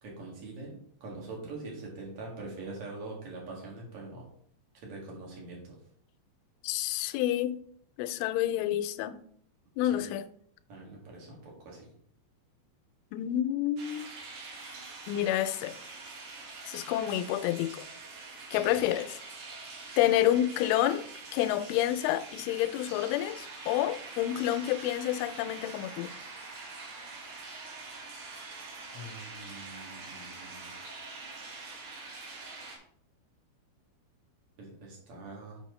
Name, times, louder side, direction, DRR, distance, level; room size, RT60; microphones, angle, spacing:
voice 1, 0.0-4.2 4.8-5.7 9.9-10.0 10.7-11.9 18.6-18.7 28.9-30.7 34.6-35.6, right 2 dB, 45° right, 1.9 m, -43 dB
voice 2, 6.6-7.6 8.0-9.2 9.8-10.3 13.1-14.1 15.1-15.7 16.6-17.9 18.5-19.2 20.0-21.1 21.3-26.1, left 13 dB, 85° left, 2.9 m, -29 dB
sound 1, 13.8-32.8, right 3 dB, 65° right, 3.3 m, -45 dB
7.4 x 6.0 x 3.1 m
omnidirectional pair, 5.6 m